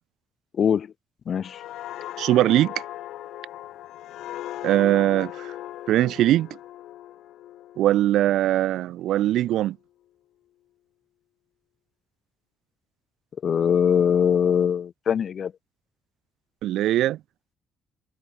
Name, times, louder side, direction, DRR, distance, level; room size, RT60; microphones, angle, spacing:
voice 1, 0.6-0.9 1.3-1.6 13.4-15.5, left 8 dB, 55° left, 1.1 m, -22 dB
sound 1, 1.4-8.9 9.3-9.5, left 13 dB, 85° left, 3.3 m, -39 dB
voice 2, 2.2-2.7 4.6-5.5 5.9-6.5 7.8-9.8 16.6-17.2, right 13 dB, 85° right, 0.9 m, -21 dB
cardioid pair, 90°, 0 cm